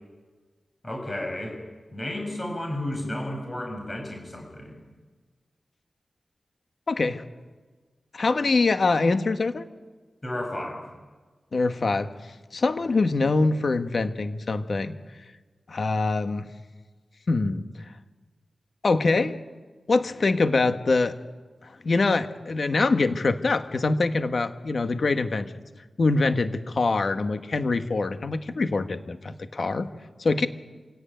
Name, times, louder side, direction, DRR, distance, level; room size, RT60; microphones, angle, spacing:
voice 1, 0.8-1.6 1.9-4.8 10.2-10.8, left 1 dB, 25° left, 2 dB, 7.6 m, -32 dB
voice 2, 6.9-7.2 8.1-9.6 11.5-12.1 12.5-14.9 15.7-16.5 17.3-17.6 18.8-19.4 19.9-21.1 21.8-25.5 26.0-29.9 30.2-30.5, left 3 dB, 55° left, 9 dB, 1.5 m, -24 dB
27.0 x 17.5 x 9.2 m, 1.4 s
wide cardioid pair, 125°, 0 cm